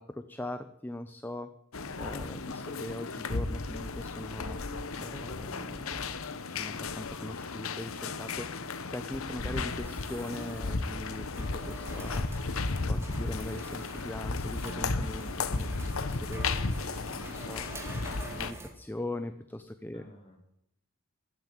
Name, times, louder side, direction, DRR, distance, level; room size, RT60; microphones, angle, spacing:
voice 1, 0.0-1.5 1.9-4.6 5.0-16.5 17.0-20.0, left 1 dB, 10° left, 9 dB, 0.7 m, -41 dB
sound 1, 1.7-18.5, left 3 dB, 75° left, 1.0 m, -34 dB
sound 2, 9.4-18.7, right 1 dB, 10° right, 2.3 m, -47 dB
voice 2, 19.9-20.4, equal, 25° left, 0 dB, 4.5 m, -54 dB
14.5 x 9.6 x 9.3 m, 0.75 s
head